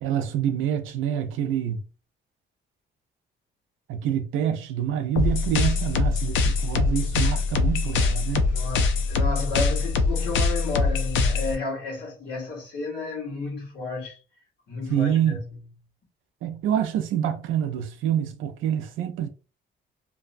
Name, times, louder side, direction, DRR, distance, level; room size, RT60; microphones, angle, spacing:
voice 1, 0.0-1.9 3.9-8.6 14.9-15.4 16.4-19.3, right 9 dB, 85° right, 0.4 m, -26 dB
sound 1, 5.2-11.5, left 4 dB, 75° left, 0.5 m, -23 dB
voice 2, 8.4-14.2 14.7-15.6, left 3 dB, 60° left, 1.1 m, -32 dB
2.6 x 2.1 x 2.5 m
cardioid pair, 90°, 20 cm